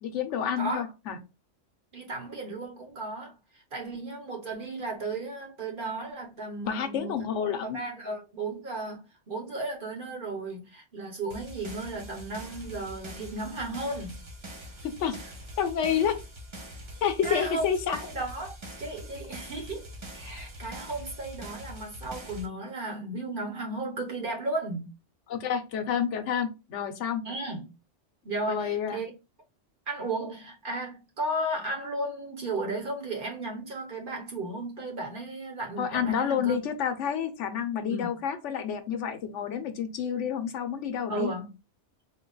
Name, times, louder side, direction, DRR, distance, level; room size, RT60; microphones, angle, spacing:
voice 1, 0.0-1.2 6.7-7.8 14.8-15.2 15.6-16.2 17.0-18.0 25.3-27.2 28.5-29.0 35.8-41.3, left 8 dB, 85° left, 1.0 m, -29 dB
voice 2, 0.6-0.9 1.9-7.1 7.6-14.2 17.2-24.9 27.2-27.7 28.2-29.1 29.9-36.6 37.8-38.1 41.1-41.5, right 2 dB, 50° right, 1.0 m, -35 dB
sound 1, 11.3-22.5, equal, 30° right, 0.6 m, -43 dB
3.8 x 2.2 x 3.8 m
omnidirectional pair, 1.2 m